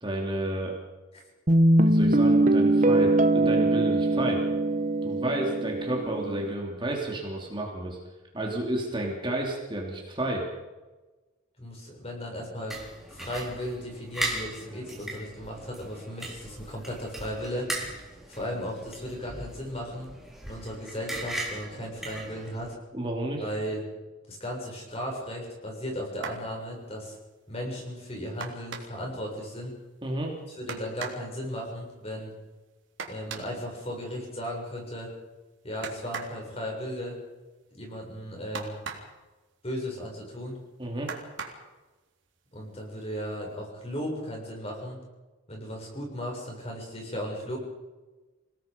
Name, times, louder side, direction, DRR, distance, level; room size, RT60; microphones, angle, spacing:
voice 1, 0.0-0.7 1.8-4.4 5.0-8.0 8.3-10.5 22.9-23.4 30.0-30.3 40.8-41.1, right 1 dB, 25° right, -1 dB, 3.2 m, -31 dB
Guitar, 1.5-6.5, right 2 dB, 40° right, 1.2 m, -22 dB
voice 2, 11.6-12.8 13.1-17.7 18.3-20.1 20.4-22.8 23.4-23.8 24.3-27.2 27.5-29.8 30.6-32.3 33.1-35.1 35.6-37.2 37.7-38.8 39.6-40.6 42.5-45.0 45.5-47.6, equal, 30° left, 0 dB, 6.9 m, -36 dB
sound 1, 12.7-22.7, right 2 dB, ahead, 3.9 m, -38 dB
sound 2, 26.1-26.5 28.4-29.1 30.7-31.3 33.0-33.6 35.8-36.4 38.5-39.2 41.1-41.7 42.8-42.9 43.3-43.5, right 5 dB, 75° right, 3.5 m, -38 dB
28.0 x 18.5 x 5.4 m, 1.2 s
head